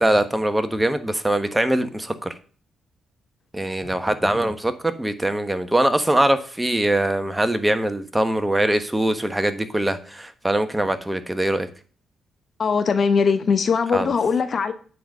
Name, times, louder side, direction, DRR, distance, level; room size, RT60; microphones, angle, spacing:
voice 1, 0.0-2.3 3.5-11.7 13.9-14.1, right 1 dB, 15° right, 1.2 m, -22 dB
voice 2, 12.6-14.7, left 5 dB, 55° left, 1.0 m, -20 dB
9.2 x 4.1 x 6.7 m
hypercardioid pair, 50°, 0 cm